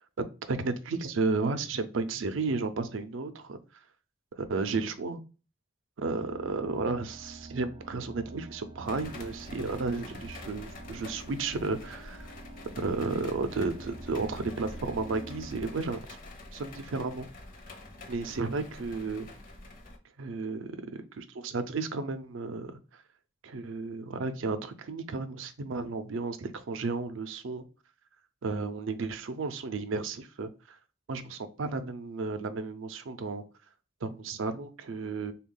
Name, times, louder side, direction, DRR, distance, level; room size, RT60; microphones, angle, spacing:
voice 1, 0.5-3.6 4.4-5.2 6.0-12.3 12.8-16.2 16.5-17.3 18.1-19.3 20.2-22.8 23.4-27.6 28.4-30.8 31.1-33.4 34.0-35.3, right 3 dB, 85° right, 0.5 m, -33 dB
sound 1, 6.0-15.7, right 2 dB, 25° right, 0.4 m, -46 dB
sound 2, 8.8-20.0, left 2 dB, 45° left, 0.6 m, -47 dB
3.5 x 2.3 x 3.7 m
head